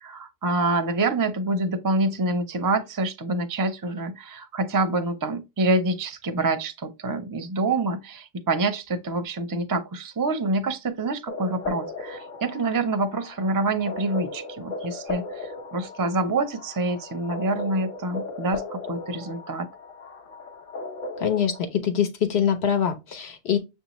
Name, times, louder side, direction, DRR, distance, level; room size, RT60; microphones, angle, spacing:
voice 1, 0.0-19.7, right 2 dB, 30° right, 0.4 m, -26 dB
sound 1, 11.3-21.6, left 3 dB, 55° left, 1.0 m, -37 dB
voice 2, 21.2-23.6, left 8 dB, 80° left, 1.2 m, -24 dB
6.5 x 2.6 x 3.0 m
omnidirectional pair, 1.1 m